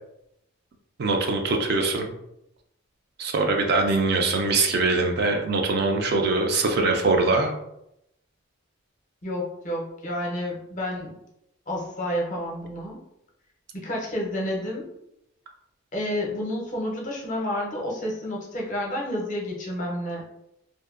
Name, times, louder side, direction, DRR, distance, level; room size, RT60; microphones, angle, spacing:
voice 1, 1.0-2.1 3.2-7.5, right 3 dB, 50° right, 3 dB, 0.3 m, -22 dB
voice 2, 9.2-11.1 11.7-13.0 13.7-14.9 15.9-20.3, left 1 dB, 40° left, -2 dB, 0.6 m, -30 dB
2.5 x 2.1 x 2.4 m, 0.82 s
head